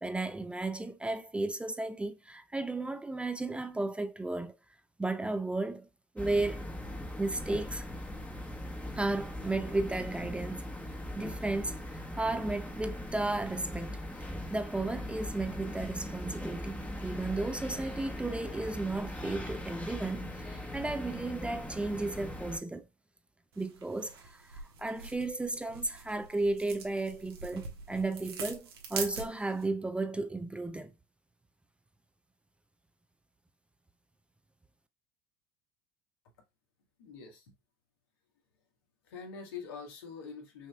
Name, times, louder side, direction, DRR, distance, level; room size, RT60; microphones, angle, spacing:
voice 1, 0.0-4.5 5.0-5.9 6.1-6.7 7.2-7.9 8.9-10.7 11.1-14.0 14.5-22.9 23.6-30.9, right 2 dB, 10° right, 0.5 m, -34 dB
sound 1, 6.2-22.6, left 1 dB, 10° left, 1.2 m, -40 dB
sound 2, 23.5-29.7, right 5 dB, 85° right, 1.3 m, -44 dB
voice 2, 37.0-37.5 39.0-40.7, left 6 dB, 75° left, 1.7 m, -44 dB
5.8 x 2.9 x 2.3 m
hypercardioid pair, 90°, 13 cm